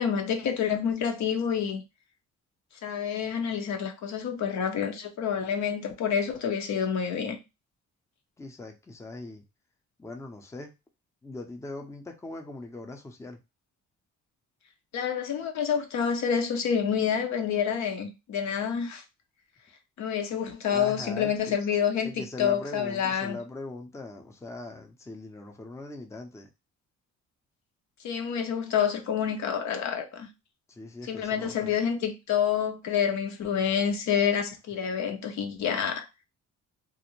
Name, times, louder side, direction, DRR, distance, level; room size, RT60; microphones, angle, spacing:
voice 1, 0.0-1.8 2.8-7.4 14.9-19.0 20.0-23.4 28.0-30.3 31.1-36.1, left 7 dB, 65° left, 0.6 m, -28 dB
voice 2, 8.4-9.4 10.0-10.7 11.2-13.4 20.7-21.6 22.0-26.5 30.7-31.7, left 2 dB, 10° left, 0.5 m, -40 dB
2.5 x 2.1 x 3.0 m
cardioid pair, 90°, 30 cm